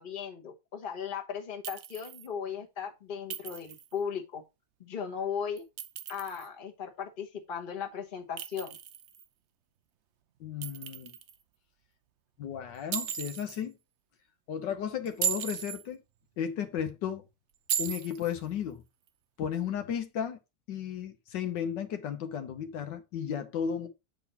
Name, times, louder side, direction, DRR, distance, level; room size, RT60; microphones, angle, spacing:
voice 1, 0.0-4.4 4.8-5.7 6.1-8.8, left 7 dB, 30° left, 1.3 m, -37 dB
Chink clink, 1.6-2.3 3.3-3.9 5.6-6.5 8.4-9.2 10.6-11.4 12.9-13.6 15.1-15.8 17.7-18.3, right 9 dB, 65° right, 0.7 m, -36 dB
voice 2, 10.4-11.1 12.4-13.7 14.5-16.0 16.4-17.2 17.8-18.8 19.4-20.4 20.7-23.9, left 8 dB, 80° left, 1.5 m, -34 dB
8.0 x 4.0 x 4.2 m
omnidirectional pair, 1.9 m